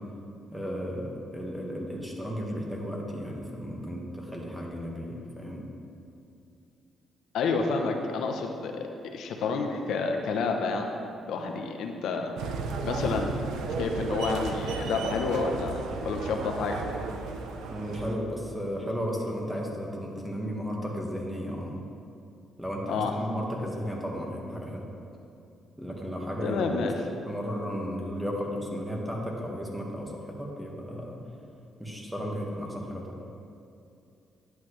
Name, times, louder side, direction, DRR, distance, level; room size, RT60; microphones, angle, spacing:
voice 1, 0.5-5.6 17.7-21.8 22.6-24.8 25.8-26.9 27.3-31.2 31.8-33.2, equal, 5° right, -1 dB, 1.5 m, -34 dB
voice 2, 7.3-10.9 11.3-12.3 12.8-13.4 13.8-16.8 22.9-23.1 26.4-26.9, left 4 dB, 80° left, 3 dB, 0.7 m, -29 dB
sound 1, 12.4-18.2, right 4 dB, 90° right, 0.7 m, -34 dB
10.5 x 8.1 x 3.2 m, 2.6 s
cardioid pair, 90°, 0 cm